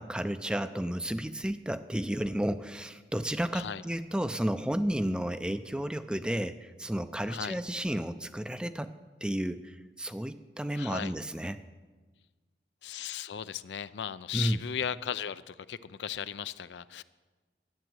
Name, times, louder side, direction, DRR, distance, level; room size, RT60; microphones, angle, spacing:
voice 1, 0.0-8.9 9.2-11.6 14.3-14.6, right 1 dB, 5° right, 11 dB, 0.4 m, -32 dB
voice 2, 7.3-7.6 10.7-11.1 12.8-17.0, left 8 dB, 85° left, 15 dB, 0.5 m, -36 dB
12.0 x 8.8 x 7.9 m, 1.3 s
head